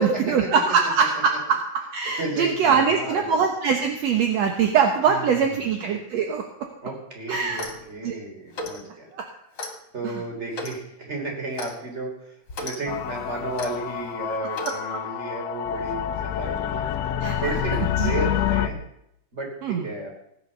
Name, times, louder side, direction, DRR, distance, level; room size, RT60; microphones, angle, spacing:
voice 1, 0.0-6.4 7.3-7.6 8.0-8.1 9.1-9.2 10.0-10.2 14.6-14.8 17.2-17.5 18.0-18.2 19.6-19.9, right 6 dB, 65° right, 4 dB, 2.2 m, -23 dB
voice 2, 2.2-3.3 5.1-5.8 6.8-9.1 9.9-12.3 12.6-16.8 17.4-18.8 19.3-20.1, right 2 dB, 20° right, 1 dB, 3.9 m, -33 dB
Clock, 7.4-7.9 8.5-8.8 9.6-9.8 10.5-10.8 11.6-11.7 12.5-12.8 13.6-13.7 14.5-14.8, left 2 dB, 40° left, 2.8 m, -34 dB
sound 1, 12.9-18.7, left 10 dB, 70° left, 1.8 m, -27 dB
17.0 x 9.6 x 6.8 m, 0.78 s
omnidirectional pair, 3.4 m